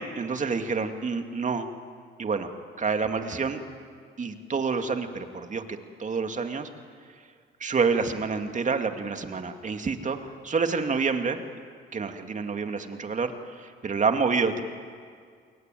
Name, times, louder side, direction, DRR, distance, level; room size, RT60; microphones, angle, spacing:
voice 1, 0.0-1.7 2.2-2.5 2.8-3.6 4.2-5.6 6.0-6.7 7.6-10.2 10.4-11.4 11.9-13.3 13.6-14.6, right 5 dB, 40° right, 6 dB, 2.5 m, -28 dB
29.0 x 22.0 x 9.3 m, 2.1 s
cardioid pair, 90°, 20 cm